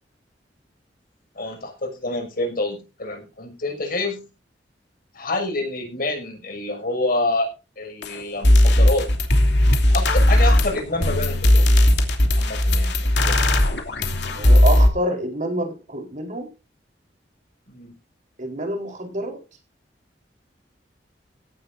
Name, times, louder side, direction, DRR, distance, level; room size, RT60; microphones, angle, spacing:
voice 1, 1.4-4.3 5.1-7.5 7.8-9.1 9.9-11.7 12.4-13.4 17.7-18.0, left 2 dB, 55° left, 4 dB, 6.5 m, -27 dB
sound 1, 8.0-8.1 8.4-14.9, left 1 dB, 70° left, 3.0 m, -17 dB
voice 2, 14.2-16.5 18.4-19.4, right 1 dB, 45° right, 4 dB, 4.2 m, -27 dB
17.0 x 13.5 x 2.7 m, 0.30 s
head